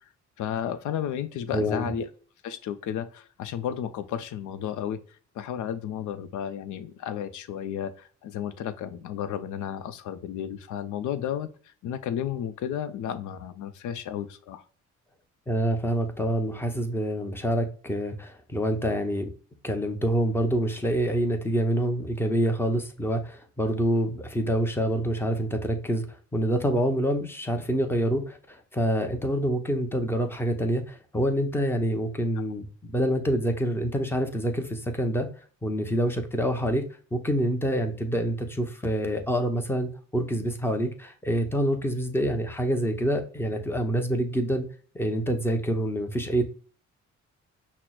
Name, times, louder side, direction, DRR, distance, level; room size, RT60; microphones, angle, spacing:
voice 1, 0.4-2.1 2.4-5.0 5.3-14.6, left 9 dB, 75° left, 12 dB, 0.6 m, -33 dB
voice 2, 1.5-1.9 15.5-19.3 19.6-35.3 35.6-36.8 37.1-44.7 44.9-46.4, equal, 10° left, 5 dB, 0.7 m, -26 dB
5.8 x 2.1 x 2.3 m, 0.41 s
cardioid pair, 90°, 30 cm